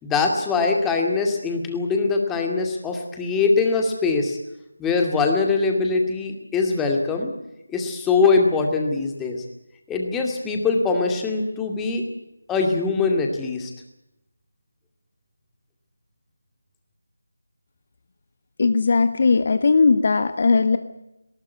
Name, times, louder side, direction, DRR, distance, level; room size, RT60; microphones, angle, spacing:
voice 1, 0.0-4.4 4.8-7.3 7.7-9.4 9.9-12.0 12.5-13.7, left 4 dB, 5° left, 2 dB, 2.3 m, -22 dB
voice 2, 18.6-20.8, left 4 dB, 40° left, 10 dB, 1.2 m, -18 dB
20.0 x 18.0 x 9.4 m, 0.90 s
figure-of-eight pair, 165°, 0 cm